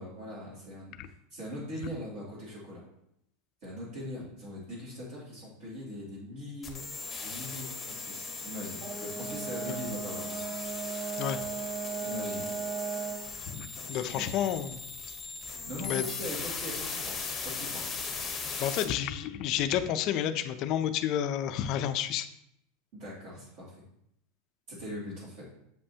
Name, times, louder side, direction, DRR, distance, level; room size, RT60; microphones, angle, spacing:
voice 1, 0.0-2.8 3.6-6.8 7.2-11.3 12.0-12.5 13.8-14.3 15.5-18.0 22.9-23.7 24.7-25.5, left 1 dB, 50° right, -8 dB, 2.6 m, -41 dB
sound 1, 6.6-18.8, left 4 dB, 15° left, 0.9 m, -38 dB
Brass instrument, 8.8-13.3, right 6 dB, 25° right, 1.5 m, -37 dB
voice 2, 13.5-14.8 15.8-16.0 18.6-22.3, left 10 dB, 40° left, 9 dB, 0.4 m, -30 dB
7.7 x 5.4 x 2.8 m, 0.77 s
supercardioid pair, 165°, 0 cm